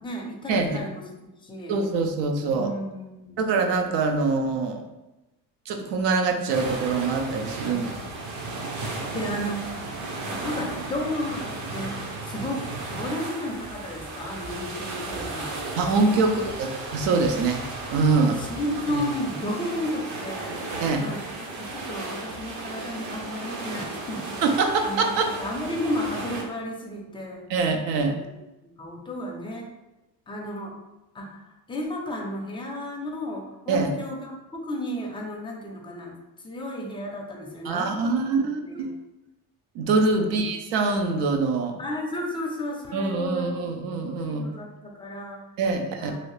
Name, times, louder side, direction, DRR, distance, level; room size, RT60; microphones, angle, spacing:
voice 1, 0.0-1.8 2.5-3.5 7.6-8.3 9.1-9.7 10.2-15.5 16.2-16.4 18.2-20.5 21.0-21.2 21.5-27.4 28.0-28.3 28.8-29.7 30.3-30.8 31.1-36.1 36.4-38.4 38.7-38.9 40.2-40.5 41.8-45.4 46.0-46.2, left 1 dB, 15° left, 0 dB, 0.4 m, -33 dB
voice 2, 1.7-2.7 3.4-4.8 5.7-7.8 15.8-17.6 17.9-18.5 18.9-19.0 20.8-21.1 24.4-25.3 27.5-28.2 33.7-33.9 37.6-38.9 39.7-41.8 42.9-44.5 45.6-46.1, right 3 dB, 90° right, 5 dB, 0.6 m, -24 dB
sound 1, 6.5-26.4, right 2 dB, 45° right, 0.6 m, -35 dB
2.8 x 2.7 x 3.1 m, 1.0 s
cardioid pair, 140°, 41 cm